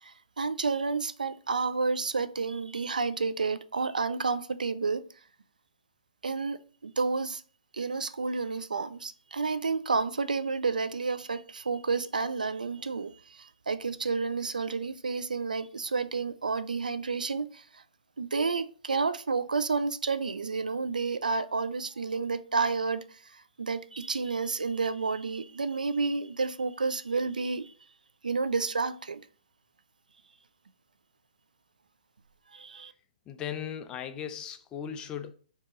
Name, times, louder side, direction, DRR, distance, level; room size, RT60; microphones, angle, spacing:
voice 1, 0.0-5.0 6.2-7.4 7.7-17.8 18.2-27.7 28.2-29.3 32.5-32.9, right 4 dB, 90° right, 0.4 m, -30 dB
voice 2, 33.3-35.3, left 9 dB, 20° left, 0.4 m, -37 dB
4.6 x 2.9 x 3.7 m
hypercardioid pair, 135°, 4 cm